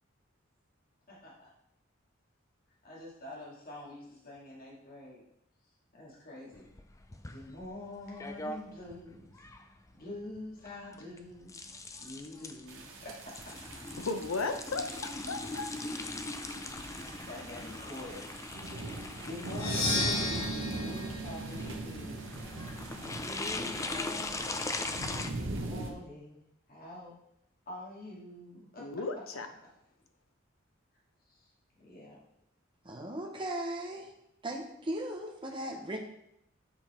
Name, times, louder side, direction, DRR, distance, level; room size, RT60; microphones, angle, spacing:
voice 1, 1.1-1.5 2.8-5.2 5.9-6.7 7.3-9.3 9.9-11.6 12.0-13.6 17.0-18.3 19.2-20.6 20.8-22.2 23.0-24.8 25.4-26.4 26.7-27.2 27.7-28.9 31.3-31.5 31.8-32.2, left 1 dB, 45° left, -5 dB, 2.5 m, -46 dB
sound 1, 6.5-25.3, left 2 dB, 15° left, 0.4 m, -41 dB
sound 2, 12.7-25.9, right 2 dB, 65° right, 1.1 m, -41 dB
voice 2, 14.0-15.7 28.8-29.5, left 3 dB, 85° left, 7 dB, 0.8 m, -35 dB
Percussion, 19.5-23.3, left 2 dB, 70° left, 1.9 m, -35 dB
voice 3, 32.8-34.1 34.4-36.0, right 1 dB, 25° right, 1 dB, 1.0 m, -37 dB
7.4 x 4.7 x 4.5 m, 0.78 s
head